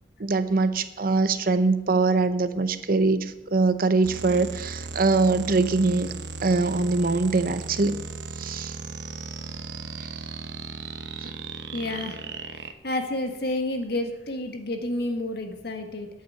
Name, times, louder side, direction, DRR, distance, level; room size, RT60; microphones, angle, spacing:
voice 1, 0.2-6.1 6.4-8.0 8.4-8.8 10.0-10.1 11.2-11.3, right 3 dB, 55° right, 12 dB, 0.7 m, -23 dB
sound 1, 4.0-12.7, right 4 dB, 80° right, 1.0 m, -36 dB
voice 2, 11.7-12.2 12.5-16.1, left 1 dB, 60° left, 5 dB, 1.7 m, -30 dB
10.0 x 8.5 x 7.9 m, 0.96 s
head